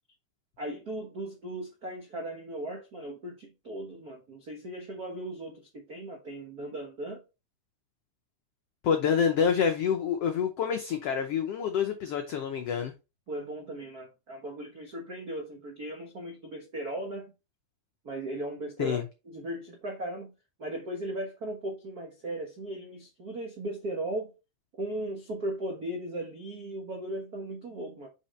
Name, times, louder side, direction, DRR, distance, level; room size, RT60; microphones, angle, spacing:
voice 1, 0.6-7.2 13.3-17.3 18.0-20.3 20.6-24.3 24.8-28.1, right 1 dB, 75° right, 0.8 m, -37 dB
voice 2, 8.8-12.9 18.8-19.0, left 7 dB, 90° left, 1.3 m, -27 dB
6.0 x 5.7 x 3.2 m
omnidirectional pair, 3.8 m